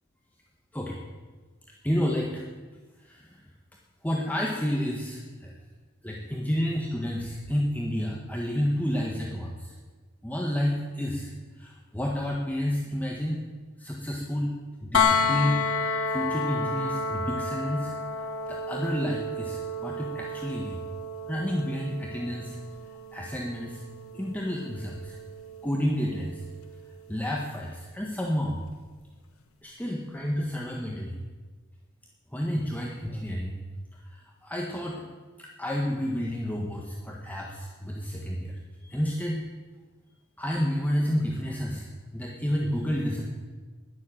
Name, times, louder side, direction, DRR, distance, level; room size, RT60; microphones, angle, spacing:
voice 1, 1.8-2.4 3.0-3.4 4.0-5.5 6.0-9.7 10.2-11.3 11.6-13.4 13.8-15.6 16.1-17.9 18.5-20.8 21.3-22.6 23.1-23.8 24.1-25.2 25.6-26.4 27.1-28.6 29.6-31.2 32.3-33.6 33.9-35.0 35.4-39.4 40.4-41.8 42.1-43.2, equal, 10° left, -2 dB, 1.5 m, -30 dB
sound 1, 14.9-26.8 28.7-28.8, left 3 dB, 85° left, 1.4 m, -31 dB
20.0 x 7.7 x 9.1 m, 1.4 s
head